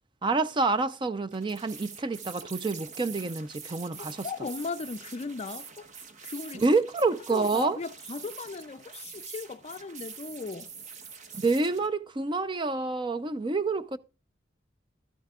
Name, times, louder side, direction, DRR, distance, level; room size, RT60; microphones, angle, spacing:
voice 1, 0.2-4.3 6.5-7.8 11.4-14.0, right 3 dB, 25° right, 0.4 m, -28 dB
sound 1, 1.3-11.9, right 5 dB, 40° right, 1.0 m, -45 dB
voice 2, 3.9-5.9 6.2-6.6 7.3-10.7, left 4 dB, 35° left, 0.4 m, -37 dB
12.5 x 10.0 x 2.4 m
head